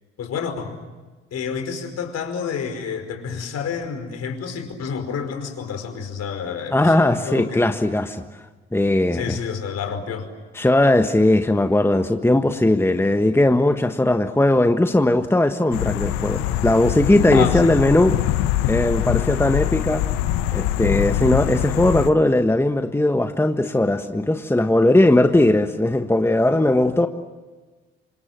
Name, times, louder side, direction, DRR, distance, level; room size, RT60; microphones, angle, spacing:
voice 1, 0.2-0.7 1.3-7.7 9.1-10.3 17.3-17.7, left 6 dB, 55° left, 6 dB, 5.1 m, -29 dB
voice 2, 6.7-8.2 8.7-9.4 10.5-18.2 18.7-20.0 20.5-27.1, left 1 dB, 10° left, 7 dB, 1.5 m, -18 dB
sound 1, 15.7-22.1, left 12 dB, 75° left, 1.3 m, -23 dB
28.5 x 26.0 x 7.7 m, 1.3 s
hypercardioid pair, 55°, 30 cm